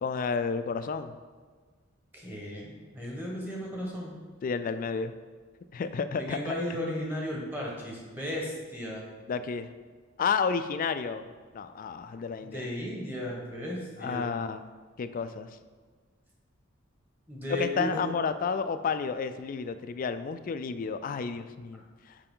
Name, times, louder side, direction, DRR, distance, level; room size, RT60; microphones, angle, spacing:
voice 1, 0.0-1.1 4.4-5.1 5.7-6.8 9.3-9.7 10.2-11.2 11.5-12.7 14.0-14.6 15.0-15.5 17.5-22.2, left 5 dB, 45° left, 11 dB, 0.3 m, -31 dB
voice 2, 2.1-4.1 6.1-9.0 12.4-14.3 17.3-17.9 21.7-21.8, left 1 dB, 10° right, -3 dB, 1.3 m, -35 dB
6.7 x 4.9 x 3.7 m, 1.5 s
head